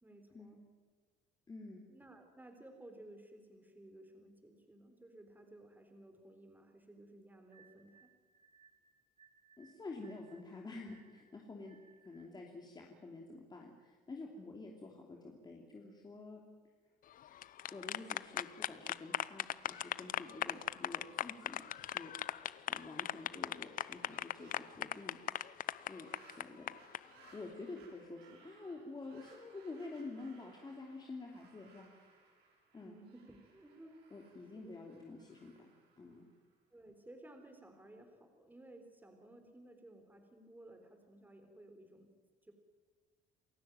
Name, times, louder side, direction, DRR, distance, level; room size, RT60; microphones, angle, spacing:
voice 1, 0.0-0.6 1.9-8.1 12.2-12.5 14.9-15.0 20.3-20.5 27.6-27.8 32.8-34.0 34.5-34.8 36.7-42.1 42.4-42.5, right 1 dB, 10° right, 5 dB, 3.8 m, -57 dB
voice 2, 1.5-1.8 9.6-11.8 12.0-16.4 17.7-25.2 25.9-26.7 27.3-32.2 32.7-33.0 34.1-35.7 36.0-36.2, left 3 dB, 25° left, 0 dB, 3.0 m, -49 dB
sound 1, 7.5-12.4, right 6 dB, 40° right, 3.5 m, -67 dB
sound 2, 17.2-27.0, left 11 dB, 55° left, 0.7 m, -38 dB
sound 3, 23.7-36.8, right 4 dB, 75° right, 7.1 m, -65 dB
27.5 x 15.5 x 9.2 m, 1.5 s
cardioid pair, 110°, 17 cm